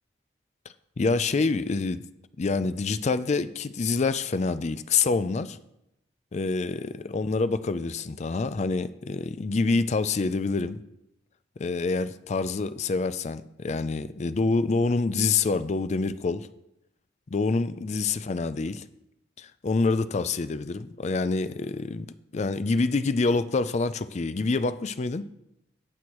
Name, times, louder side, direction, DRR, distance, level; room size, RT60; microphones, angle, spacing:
voice 1, 1.0-2.0 2.4-5.6 6.3-10.8 11.6-16.5 17.3-18.8 19.4-25.3, left 3 dB, 40° left, 13 dB, 0.4 m, -26 dB
18.0 x 6.2 x 3.1 m, 0.84 s
head